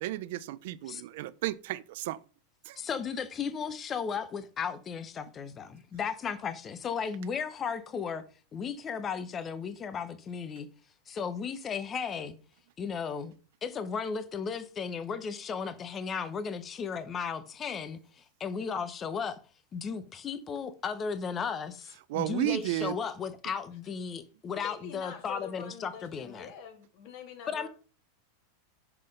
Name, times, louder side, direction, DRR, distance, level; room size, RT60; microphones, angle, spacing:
voice 1, 0.0-2.2 2.7-2.8 22.1-23.0, right 15 dB, 65° right, 0.5 m, -33 dB
voice 2, 2.8-8.2 8.5-10.7 11.1-12.3 12.8-13.3 13.6-19.4 19.7-26.5 27.5-27.7, left 6 dB, 25° left, 0.8 m, -35 dB
voice 3, 24.6-27.7, left 7 dB, 50° left, 2.2 m, -45 dB
5.8 x 5.5 x 5.3 m
supercardioid pair, 145°, 0 cm